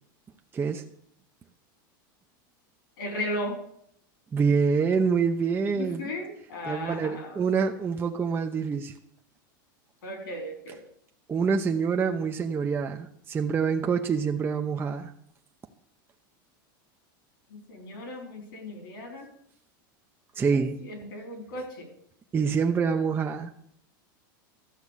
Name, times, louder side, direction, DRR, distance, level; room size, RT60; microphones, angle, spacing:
voice 1, 0.5-0.9 4.3-6.1 6.7-8.9 11.3-15.1 20.3-20.8 22.3-23.5, right 5 dB, 20° right, 4 dB, 0.7 m, -26 dB
voice 2, 3.0-3.6 5.7-7.4 10.0-10.8 17.5-19.3 20.8-21.9 22.9-23.0, left 1 dB, 85° left, 4 dB, 4.4 m, -36 dB
13.0 x 6.0 x 8.3 m, 0.70 s
supercardioid pair, 130°, 11 cm